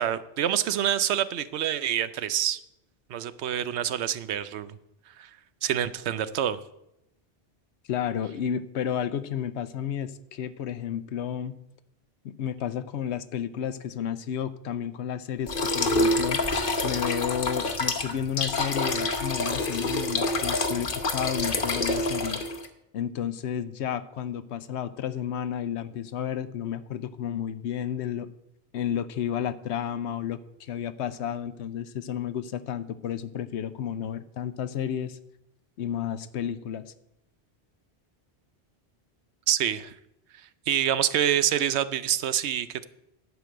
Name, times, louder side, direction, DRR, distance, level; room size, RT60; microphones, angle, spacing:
voice 1, 0.0-2.6 3.1-4.8 5.2-5.3 5.6-6.6 39.5-39.9 40.7-42.9, right 10 dB, 80° right, 14 dB, 0.9 m, -26 dB
voice 2, 7.9-11.5 12.2-16.4 16.8-22.4 22.9-28.3 28.7-35.2 35.8-36.9, left 9 dB, 85° left, 13 dB, 0.9 m, -32 dB
sound 1, 15.5-22.7, left 2 dB, 55° left, 1.1 m, -27 dB
11.0 x 5.1 x 7.8 m, 0.84 s
omnidirectional pair, 1.1 m